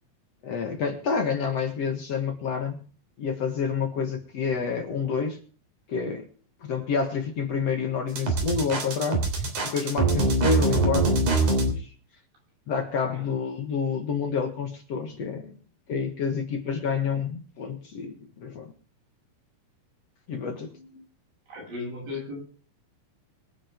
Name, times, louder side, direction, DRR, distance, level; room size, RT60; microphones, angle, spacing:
voice 1, 0.4-2.8 3.2-5.4 5.9-6.3 6.6-9.3 9.6-11.9 12.7-15.5 15.9-18.7 20.3-21.0, left 5 dB, 50° left, 5 dB, 2.4 m, -29 dB
sound 1, 8.2-11.7, right 2 dB, 55° right, 4.7 m, -23 dB
voice 2, 21.5-22.4, left 3 dB, 85° right, -1 dB, 9.6 m, -36 dB
24.5 x 8.8 x 3.7 m, 0.41 s
omnidirectional pair, 4.3 m